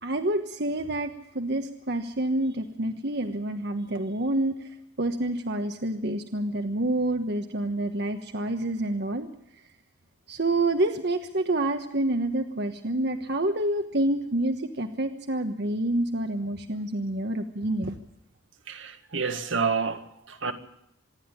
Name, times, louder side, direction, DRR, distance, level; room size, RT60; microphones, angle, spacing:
voice 1, 0.0-4.7 5.0-9.3 10.3-18.0, right 1 dB, 55° right, 1.3 m, -28 dB
voice 2, 18.7-20.5, right 5 dB, 75° right, 1.9 m, -29 dB
26.0 x 11.0 x 9.9 m
head